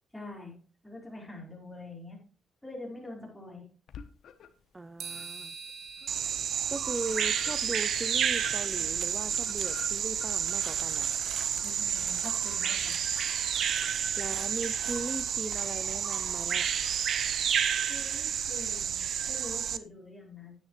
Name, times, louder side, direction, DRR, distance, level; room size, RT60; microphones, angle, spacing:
voice 1, 0.1-0.5 0.8-2.2 2.6-3.7 11.6-13.1 17.9-20.5, left 2 dB, 5° left, -2 dB, 4.7 m, -45 dB
sound 1, 3.9-4.7 5.1-14.9, left 8 dB, 65° left, 1.1 m, -51 dB
voice 2, 4.7-5.5 6.7-11.1 14.2-16.7, right 2 dB, 20° right, 13 dB, 0.5 m, -38 dB
sound 2, 5.0-10.3, right 5 dB, 80° right, 1.9 m, -47 dB
Bird vocalization bird call bird song, 6.1-19.8, right 8 dB, 60° right, 0.6 m, -30 dB
10.5 x 9.5 x 3.3 m, 0.35 s
cardioid pair, 90°, 0 cm